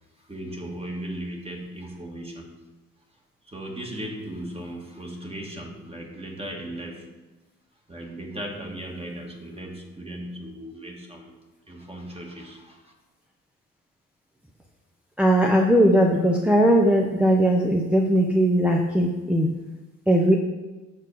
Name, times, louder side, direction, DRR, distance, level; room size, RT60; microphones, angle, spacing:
voice 1, 0.3-2.6 3.5-7.1 7.9-11.4 11.7-12.9, right 1 dB, 20° right, 0 dB, 2.0 m, -37 dB
voice 2, 15.2-19.5 20.1-20.4, equal, 5° right, -1 dB, 0.9 m, -19 dB
8.3 x 6.6 x 4.8 m, 1.2 s
cardioid pair, 90°, 30 cm